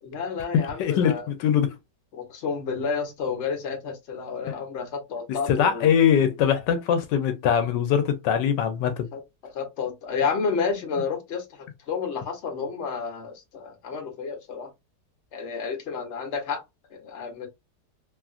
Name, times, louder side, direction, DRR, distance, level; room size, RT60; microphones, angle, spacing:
voice 1, 0.0-1.3 2.1-5.9 9.1-9.2 9.5-14.7 15.3-16.6 16.9-17.5, left 5 dB, 45° left, 1.1 m, -30 dB
voice 2, 0.5-1.8 4.5-4.6 5.3-9.1, left 8 dB, 85° left, 1.2 m, -22 dB
3.0 x 2.4 x 2.3 m
omnidirectional pair, 1.9 m